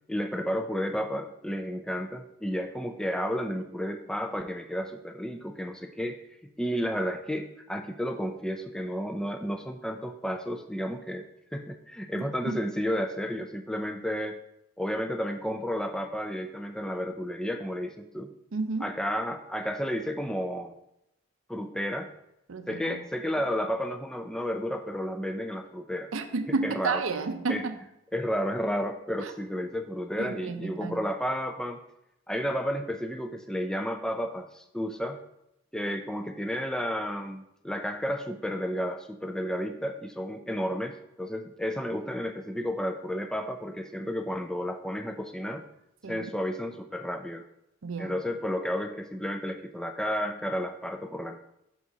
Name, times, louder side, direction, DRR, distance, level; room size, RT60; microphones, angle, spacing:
voice 1, 0.1-6.2 6.6-11.3 11.5-14.4 14.8-18.3 18.8-20.7 21.5-22.1 22.7-26.1 26.6-27.0 27.5-27.6 28.1-31.8 32.3-35.2 35.7-45.6 46.1-47.4 48.0-51.4, equal, 5° left, 6 dB, 0.4 m, -32 dB
voice 2, 18.5-19.0 22.5-23.0 26.1-27.8 29.2-29.3 30.2-31.0 46.0-46.3 47.8-48.2, right 4 dB, 90° right, 8 dB, 0.6 m, -31 dB
6.2 x 4.1 x 4.8 m, 0.84 s
head